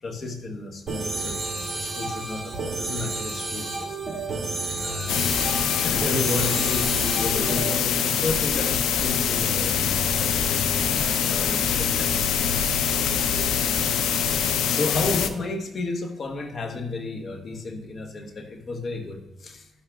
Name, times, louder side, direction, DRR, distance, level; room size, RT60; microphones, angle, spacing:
voice 1, 0.0-4.0 4.8-5.3 5.8-12.2 12.8-13.5 14.7-19.7, left 3 dB, 45° left, 6 dB, 0.9 m, -33 dB
sound 1, 0.9-7.7, right 3 dB, 30° right, 1.9 m, -31 dB
sound 2, 5.1-15.3, left 7 dB, 85° left, 0.5 m, -24 dB
11.0 x 5.9 x 2.3 m, 0.94 s
cardioid pair, 90°, 0 cm